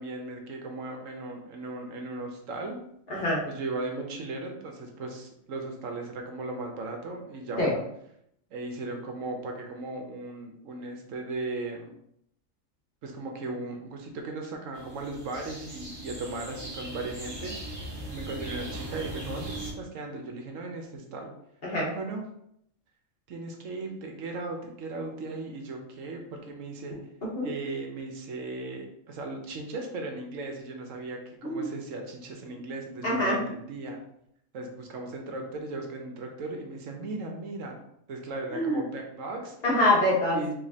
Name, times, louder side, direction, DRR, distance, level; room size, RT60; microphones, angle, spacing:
voice 1, 0.0-2.8 3.5-7.8 8.5-11.9 13.0-21.3 21.9-22.2 23.3-26.9 27.4-34.0 34.5-37.8 38.1-39.5 40.3-40.5, right 2 dB, 75° right, 3 dB, 1.1 m, -37 dB
voice 2, 3.1-3.4 7.6-7.7 21.6-21.9 27.3-27.5 31.4-31.7 33.0-33.4 38.5-38.8 39.6-40.4, left 1 dB, 45° left, -4 dB, 1.4 m, -25 dB
sound 1, 14.7-19.7, right 1 dB, 20° right, 0.9 m, -39 dB
5.0 x 3.1 x 2.8 m, 0.74 s
omnidirectional pair, 1.4 m